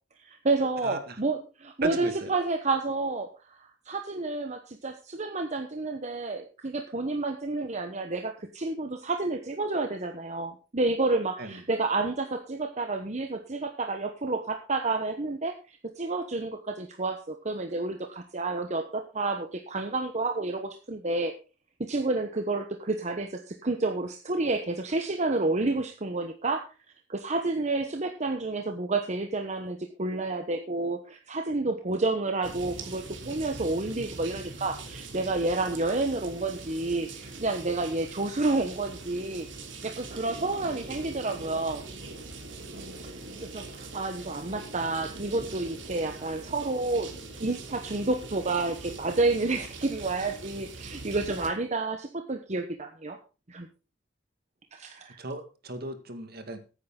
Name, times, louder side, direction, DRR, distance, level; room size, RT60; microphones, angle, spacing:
voice 1, 0.2-21.3 21.8-26.6 27.1-39.5 39.8-41.8 43.4-47.1 47.4-53.2 53.5-53.7 54.7-55.2, right 3 dB, 40° right, 5 dB, 1.1 m, -30 dB
voice 2, 0.8-1.2 1.8-2.3 11.4-11.6 42.7-43.1 55.2-56.7, right 2 dB, 55° right, 7 dB, 2.1 m, -37 dB
sound 1, 32.4-51.5, right 3 dB, 85° right, 2.9 m, -42 dB
15.0 x 9.5 x 3.9 m, 0.33 s
head